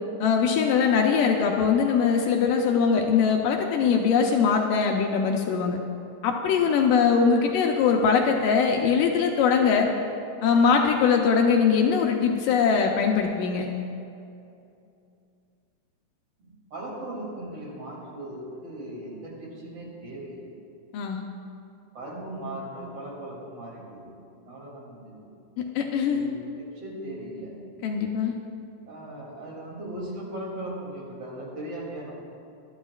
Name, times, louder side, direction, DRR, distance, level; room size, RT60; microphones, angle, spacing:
voice 1, 0.2-5.8 6.2-9.9 10.4-13.7 20.9-21.2 25.6-26.3 27.8-28.3, left 6 dB, 75° left, 2 dB, 2.1 m, -22 dB
voice 2, 16.4-20.5 21.9-24.1 24.5-25.3 26.1-27.5 28.8-32.1, right 1 dB, 40° right, -4 dB, 3.4 m, -38 dB
21.0 x 12.0 x 2.4 m, 2.6 s
omnidirectional pair, 4.6 m